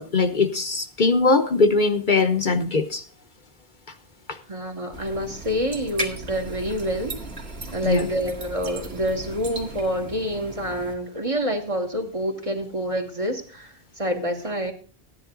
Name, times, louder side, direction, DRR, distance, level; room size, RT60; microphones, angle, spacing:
voice 1, 0.0-3.0 7.8-8.1, left 3 dB, 50° left, 6 dB, 1.1 m, -21 dB
voice 2, 4.5-7.2 7.7-14.7, equal, 35° right, 3 dB, 1.6 m, -27 dB
sound 1, 4.9-10.9, right 2 dB, 80° right, 2.2 m, -36 dB
14.0 x 10.0 x 3.8 m, 0.41 s
omnidirectional pair, 1.0 m